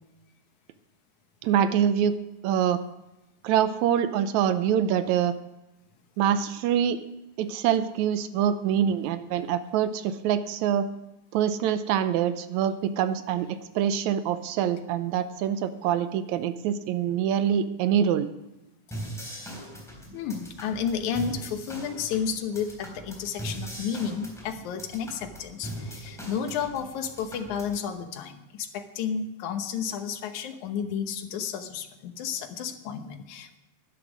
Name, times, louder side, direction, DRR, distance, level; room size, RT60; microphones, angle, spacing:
voice 1, 1.4-2.2 2.4-2.8 3.4-5.4 6.2-7.0 7.4-10.9 11.3-18.3, right 9 dB, 75° right, 11 dB, 2.0 m, -25 dB
sound 1, 18.9-27.9, right 1 dB, ahead, 3.3 m, -40 dB
voice 2, 20.1-33.6, left 7 dB, 80° left, 7 dB, 2.4 m, -32 dB
11.5 x 11.0 x 6.2 m, 0.97 s
omnidirectional pair, 3.4 m